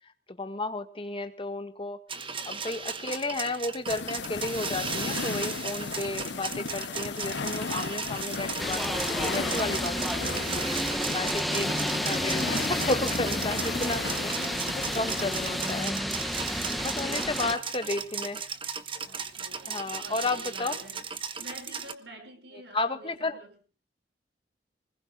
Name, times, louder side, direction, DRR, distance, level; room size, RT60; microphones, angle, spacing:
voice 1, 0.3-2.0 2.4-10.4 10.9-14.3 14.7-16.0 16.7-18.4 19.6-20.8 22.7-23.4, left 2 dB, 30° left, 8 dB, 1.7 m, -33 dB
sound 1, 2.1-21.9, right 6 dB, 30° right, 1.1 m, -36 dB
sound 2, 3.9-15.8, left 5 dB, 75° left, 0.7 m, -35 dB
sound 3, 8.6-17.6, equal, ahead, 0.9 m, -31 dB
voice 2, 19.1-21.1 21.4-23.6, right 1 dB, 75° right, 6 dB, 5.6 m, -48 dB
25.5 x 20.0 x 2.4 m, 0.34 s
head